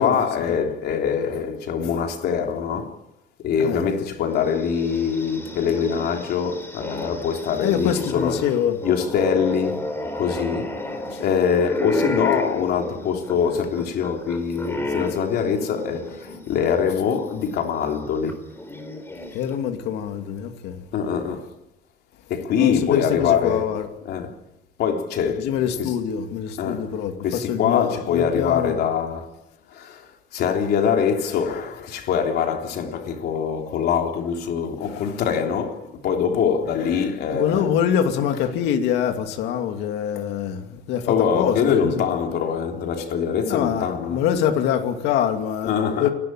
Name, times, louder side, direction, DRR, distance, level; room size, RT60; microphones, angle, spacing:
voice 1, 0.0-3.0 3.4-8.5 8.8-9.8 10.1-10.7 11.2-18.4 20.9-21.5 22.3-23.7 24.1-24.4 24.8-25.9 26.6-26.9 27.2-29.3 29.7-37.7 41.1-44.2 45.6-46.1, left 7 dB, 70° left, 3.6 m, -24 dB
sound 1, 4.4-16.7 17.1-17.2 18.3-19.6, left 1 dB, 15° left, 4.1 m, -32 dB
voice 2, 7.6-8.8 11.1-11.2 19.3-20.8 22.6-23.9 25.4-28.8 34.8-35.0 37.3-42.0 43.5-45.7 46.0-46.1, left 9 dB, 90° left, 2.6 m, -24 dB
29.5 x 12.5 x 8.9 m
cardioid pair, 110°, 17 cm